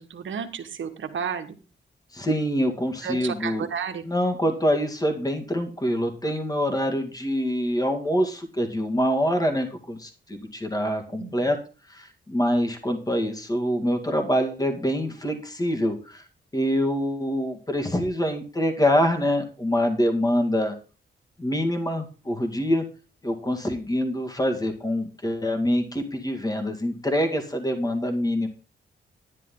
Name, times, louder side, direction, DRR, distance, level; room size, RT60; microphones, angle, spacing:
voice 1, 0.0-1.6 3.0-4.0 11.2-11.3, right 7 dB, 75° right, 7 dB, 1.5 m, -32 dB
voice 2, 2.1-3.7 4.0-11.6 11.9-16.2 16.5-20.7 21.4-22.8 23.2-28.5, equal, 20° left, 5 dB, 2.3 m, -25 dB
11.0 x 10.0 x 3.9 m, 0.34 s
cardioid pair, 85°, 20 cm